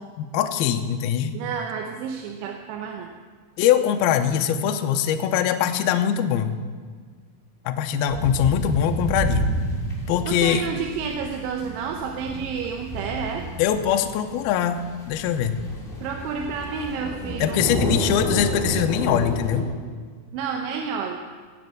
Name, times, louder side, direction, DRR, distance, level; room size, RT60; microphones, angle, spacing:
voice 1, 0.2-1.3 3.6-6.5 7.7-9.5 10.1-10.7 13.6-14.8 15.1-15.6 17.4-19.7, left 9 dB, 85° left, 6 dB, 2.2 m, -22 dB
voice 2, 1.3-3.1 10.3-13.5 16.0-18.1 20.3-21.2, right 6 dB, 80° right, 3 dB, 3.2 m, -30 dB
sound 1, 8.1-19.6, equal, 20° left, 1.5 m, -30 dB
19.0 x 8.0 x 7.8 m, 1.5 s
omnidirectional pair, 5.4 m